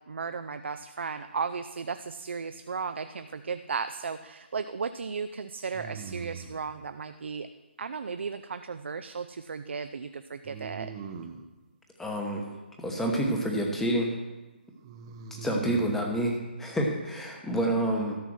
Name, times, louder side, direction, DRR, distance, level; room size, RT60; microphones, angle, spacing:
voice 1, 0.1-7.5 7.8-10.9, right 5 dB, 80° right, 9 dB, 0.5 m, -35 dB
sound 1, 3.0-3.7 5.7-6.7 10.4-11.5 14.8-16.1, right 6 dB, 25° right, 0.7 m, -41 dB
voice 2, 12.0-12.4 12.8-14.1 15.4-18.2, right 1 dB, 5° left, 1 dB, 1.0 m, -28 dB
13.0 x 5.7 x 6.4 m, 1.1 s
hypercardioid pair, 165°, 6 cm